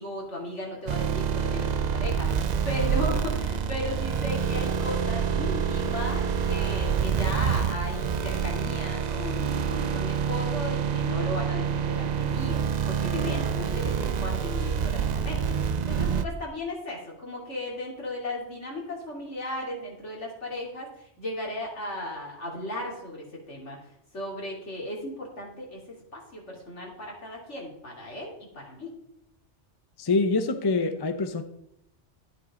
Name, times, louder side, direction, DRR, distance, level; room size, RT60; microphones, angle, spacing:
voice 1, 0.0-23.8 24.1-28.9, left 1 dB, 70° left, 3.6 m, -36 dB
sound 1, 0.9-16.2, right 7 dB, 50° right, 0.6 m, -27 dB
voice 2, 30.0-31.4, left 3 dB, 25° left, 0.7 m, -25 dB
12.5 x 10.5 x 3.8 m
omnidirectional pair, 1.2 m